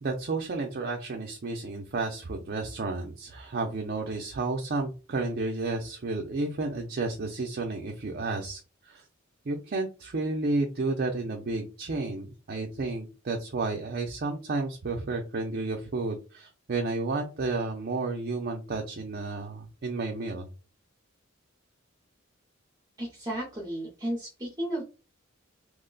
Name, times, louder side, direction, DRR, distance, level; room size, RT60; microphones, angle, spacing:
voice 1, 0.0-9.0 9.4-20.5, right 3 dB, 50° right, 2 dB, 0.5 m, -32 dB
voice 2, 23.0-24.8, right 1 dB, 20° right, -3 dB, 0.7 m, -33 dB
3.0 x 2.1 x 3.8 m, 0.32 s
head